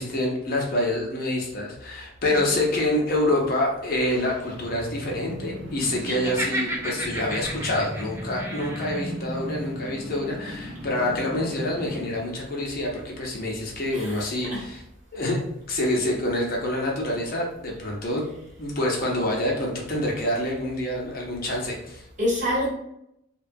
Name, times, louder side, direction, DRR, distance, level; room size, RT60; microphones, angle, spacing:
voice 1, 0.0-14.8 15.1-15.4 15.7-22.0, left 1 dB, 45° left, -2 dB, 0.6 m, -27 dB
sound 1, 3.7-12.3, equal, 60° right, 0.7 m, -37 dB
Laughter, 6.0-9.0, right 1 dB, 10° right, 0.4 m, -32 dB
voice 2, 13.9-14.6 22.2-22.7, equal, 35° right, -5 dB, 1.1 m, -27 dB
2.8 x 2.2 x 2.6 m, 0.79 s
head